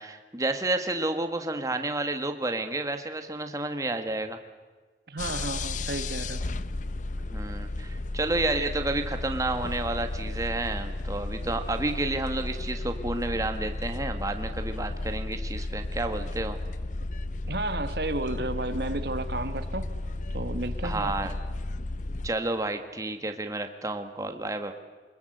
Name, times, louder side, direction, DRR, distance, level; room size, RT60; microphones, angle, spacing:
voice 1, 0.0-4.4 7.3-16.6 20.8-21.3 22.2-24.7, right 2 dB, 20° right, 1.5 m, -30 dB
voice 2, 5.1-6.4 17.5-19.9 20.3-21.1, right 2 dB, 60° right, 1.4 m, -32 dB
sound 1, 5.2-22.3, left 2 dB, 45° left, 0.7 m, -33 dB
24.5 x 21.5 x 7.9 m
head